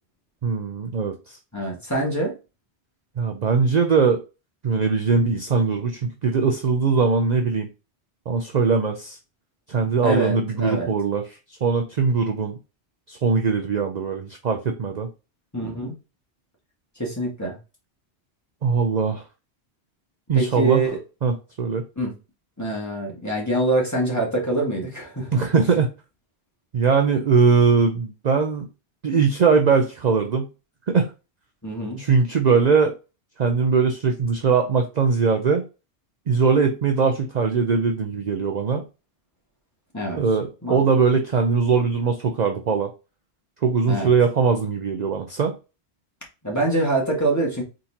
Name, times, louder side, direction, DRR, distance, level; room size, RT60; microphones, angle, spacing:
voice 1, 0.4-1.4 3.2-4.2 4.6-7.7 8.3-9.2 9.7-12.6 13.1-15.1 18.6-19.3 20.3-20.8 21.2-21.8 25.3-25.9 26.7-28.7 29.0-30.5 30.9-31.1 32.0-32.9 33.4-35.6 36.3-38.8 40.1-42.9 43.6-45.6, right 5 dB, 50° right, 5 dB, 0.6 m, -21 dB
voice 2, 1.5-2.4 10.0-10.9 15.5-15.9 17.0-17.6 20.3-20.9 22.0-22.2 22.6-25.4 31.6-32.0 39.9-40.2 40.6-40.8 43.9-44.1 46.4-47.6, right 2 dB, 15° left, -2 dB, 1.9 m, -25 dB
4.3 x 3.8 x 2.8 m, 0.30 s
omnidirectional pair, 1.1 m